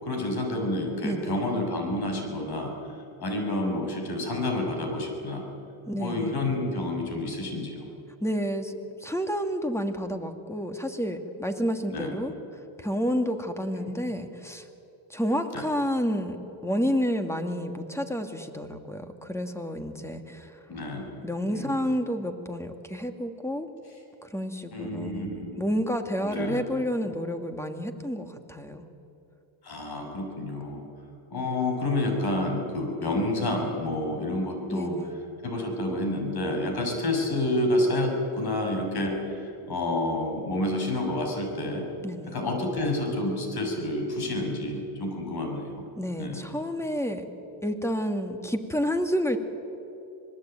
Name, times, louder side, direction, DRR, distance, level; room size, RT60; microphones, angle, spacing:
voice 1, 0.0-2.7 3.2-5.5 5.9-7.9 11.9-12.1 13.7-13.9 15.5-15.7 20.7-21.1 21.5-21.8 24.7-25.5 26.2-26.6 29.6-30.9 31.3-35.0 35.4-41.9 42.3-45.8 46.2-46.4, left 1 dB, 50° left, 3 dB, 6.8 m, -29 dB
voice 2, 5.9-6.4 8.2-8.7 9.0-12.3 12.8-14.6 15.1-16.4 16.6-20.5 21.2-23.7 24.2-28.8 34.7-35.1 42.0-42.4 46.0-47.2 47.6-49.4, equal, 5° left, 6 dB, 2.4 m, -30 dB
26.0 x 19.5 x 9.2 m, 2.8 s
cardioid pair, 90°, 49 cm